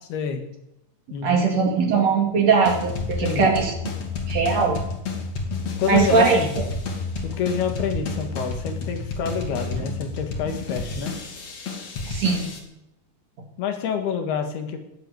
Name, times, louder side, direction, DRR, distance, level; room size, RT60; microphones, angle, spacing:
voice 1, 0.1-0.4 1.1-1.5 3.2-3.5 5.8-6.5 7.2-11.2 13.6-14.8, left 7 dB, 85° left, 5 dB, 3.8 m, -27 dB
voice 2, 1.2-3.7 4.3-4.8 5.9-6.4 9.7-9.8 12.1-12.5, right 5 dB, 50° right, 2 dB, 3.1 m, -20 dB
sound 1, 2.6-12.6, left 3 dB, 45° left, 3.1 m, -30 dB
19.0 x 8.1 x 8.0 m, 0.85 s
omnidirectional pair, 4.4 m